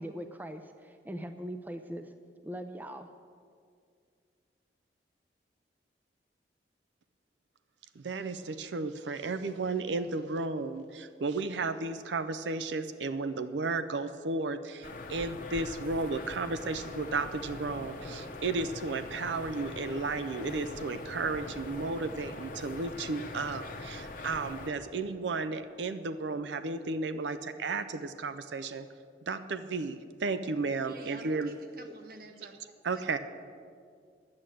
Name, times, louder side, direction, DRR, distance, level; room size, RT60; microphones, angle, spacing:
voice 1, 0.0-2.1 2.4-3.1, equal, 10° right, 8 dB, 0.4 m, -41 dB
voice 2, 8.0-28.9 29.3-31.5 32.8-33.2, right 3 dB, 85° right, 11 dB, 0.5 m, -33 dB
sound 1, 14.8-24.7, left 2 dB, 50° left, 0.9 m, -43 dB
voice 3, 30.8-32.6, right 2 dB, 55° right, 6 dB, 1.1 m, -49 dB
11.0 x 8.7 x 7.6 m, 2.2 s
head